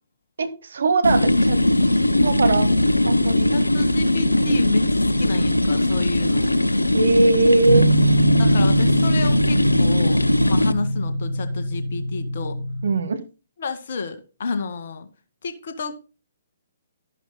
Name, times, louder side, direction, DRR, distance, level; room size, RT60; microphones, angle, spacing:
voice 1, 0.4-1.6 1.9-2.7 3.0-3.5 6.9-7.9 12.8-13.2, right 3 dB, 60° right, 11 dB, 1.7 m, -20 dB
sound 1, 1.0-10.7, left 1 dB, 85° left, 0.8 m, -20 dB
voice 2, 3.5-6.5 8.4-12.6 13.6-15.1 15.4-16.0, left 4 dB, 50° left, 8 dB, 2.0 m, -30 dB
Guitar, 7.7-12.9, right 1 dB, 85° right, 3.1 m, -22 dB
13.0 x 11.5 x 2.2 m, 0.31 s
figure-of-eight pair, 125°, 0 cm